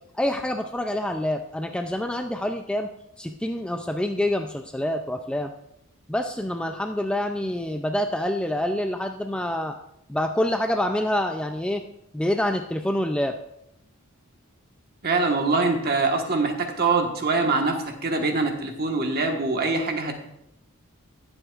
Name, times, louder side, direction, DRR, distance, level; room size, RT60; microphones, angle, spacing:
voice 1, 0.2-2.9 3.2-5.5 6.1-9.8 10.1-11.8 12.1-13.3, left 1 dB, 5° left, 5 dB, 0.4 m, -26 dB
voice 2, 15.0-20.1, right 3 dB, 45° right, 3 dB, 1.4 m, -24 dB
19.5 x 7.8 x 2.5 m, 0.79 s
head